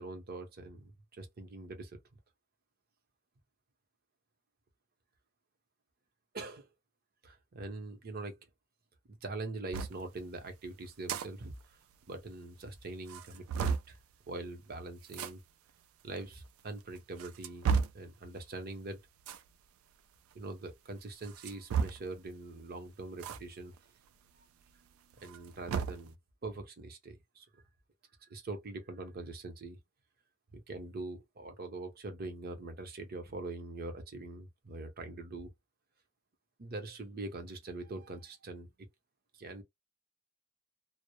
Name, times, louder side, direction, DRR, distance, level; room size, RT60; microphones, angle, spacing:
voice 1, 0.0-2.0 6.3-6.7 7.2-8.4 9.1-11.8 12.1-14.0 14.3-15.4 16.0-19.0 20.3-23.7 25.2-26.1 26.4-27.5 28.2-29.8 30.7-35.5 36.6-38.7 39.3-39.6, right 2 dB, 45° right, 0.7 m, -43 dB
sound 1, 9.7-10.0 10.9-11.3 11.6-11.7 11.9-12.0 12.6-12.7 13.1-13.9 15.1-15.3 16.2-16.3 17.0-18.1 19.2-19.5 21.2-22.2 23.2-23.4 23.8-23.9 25.1-26.1, right 6 dB, 80° right, 0.3 m, -33 dB
2.1 x 2.0 x 2.9 m
head